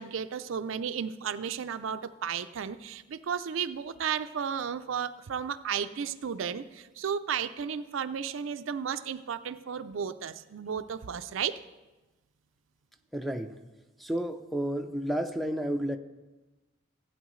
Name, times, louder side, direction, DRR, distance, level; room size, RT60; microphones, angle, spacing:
voice 1, 0.0-11.6, right 7 dB, 70° right, 12 dB, 0.4 m, -33 dB
voice 2, 13.1-13.6 14.0-16.0, right 1 dB, ahead, 7 dB, 0.5 m, -31 dB
16.5 x 8.6 x 3.1 m, 1.1 s
head